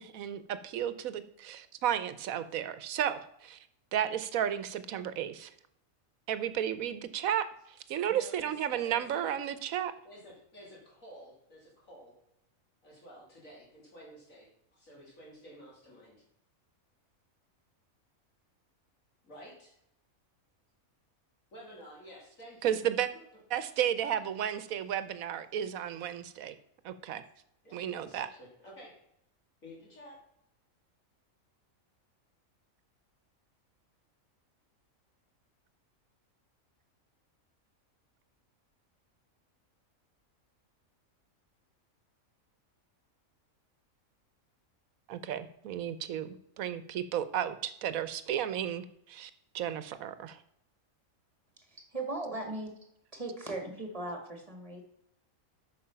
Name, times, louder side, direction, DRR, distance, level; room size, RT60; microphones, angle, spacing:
voice 1, 0.0-3.6 3.9-5.5 6.3-7.4 7.9-9.9 22.6-23.1 23.5-26.5 26.8-27.2 27.7-28.3 45.1-49.3 49.5-50.4, right 10 dB, 85° right, 13 dB, 1.2 m, -33 dB
voice 2, 8.0-9.4 10.0-12.1 12.8-16.2 19.2-19.7 21.5-22.8 24.0-24.2 27.6-28.9 29.6-30.2, equal, 70° left, -4 dB, 3.3 m, -51 dB
voice 3, 51.9-52.7 53.1-54.8, right 2 dB, 25° right, 3 dB, 2.0 m, -38 dB
8.6 x 6.1 x 5.6 m, 0.76 s
omnidirectional pair, 1.4 m